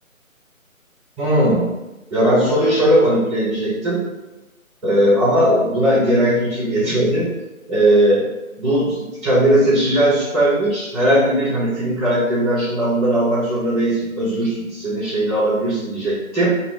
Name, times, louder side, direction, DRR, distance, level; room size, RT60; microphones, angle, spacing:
voice 1, 1.2-1.6 2.1-4.0 4.8-7.3 7.7-8.2 8.6-16.5, right 1 dB, ahead, -12 dB, 0.5 m, -18 dB
2.1 x 2.1 x 3.8 m, 1.0 s
figure-of-eight pair, 155°, 42 cm